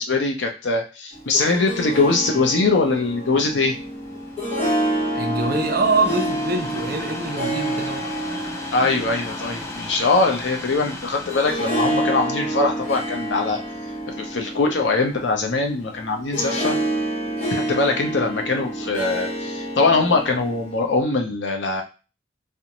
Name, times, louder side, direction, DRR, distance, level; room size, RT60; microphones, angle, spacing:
voice 1, 0.0-3.8 8.7-13.6 14.2-16.8 17.5-21.8, left 3 dB, 75° left, 0.6 m, -22 dB
Harp, 1.1-21.0, right 1 dB, 35° left, 1.0 m, -28 dB
Train, 2.6-15.7 16.4-16.5, left 2 dB, 15° left, 0.4 m, -38 dB
voice 2, 5.1-8.1, right 3 dB, 50° right, 0.5 m, -24 dB
2.5 x 2.1 x 2.9 m
head